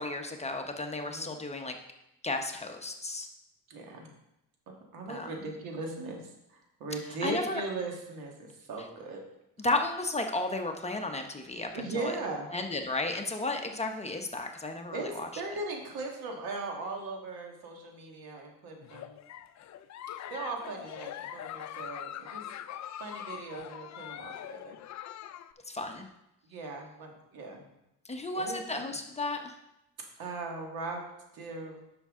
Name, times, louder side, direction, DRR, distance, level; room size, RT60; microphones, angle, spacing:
voice 1, 0.0-1.8 2.2-3.3 5.1-5.3 7.2-7.6 9.6-12.1 12.5-15.3 25.7-26.1 28.0-29.5, left 2 dB, 20° left, 4 dB, 0.9 m, -33 dB
voice 2, 1.1-1.4 3.7-4.1 4.9-6.2 6.5-9.2 11.7-12.5 14.9-19.2 20.3-22.4 23.0-24.8 26.5-27.7 28.3-28.8 30.2-31.0 31.3-31.8, right 3 dB, 85° right, 1 dB, 2.0 m, -38 dB
Giggle, 18.8-25.5, left 11 dB, 50° left, 0.5 m, -42 dB
10.0 x 6.2 x 3.7 m, 0.86 s
cardioid pair, 110°, 35 cm